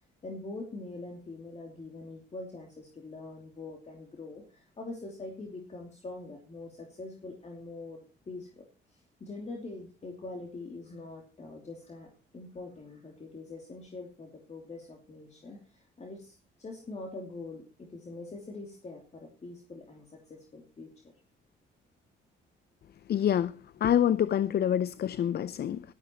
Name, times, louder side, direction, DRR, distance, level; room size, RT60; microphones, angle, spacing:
voice 1, 0.2-21.1, left 2 dB, 35° left, 2.8 m, -44 dB
voice 2, 23.1-23.5 23.8-25.8, left 10 dB, 55° left, 0.6 m, -26 dB
13.0 x 12.5 x 4.5 m
cardioid pair, 90°, 20 cm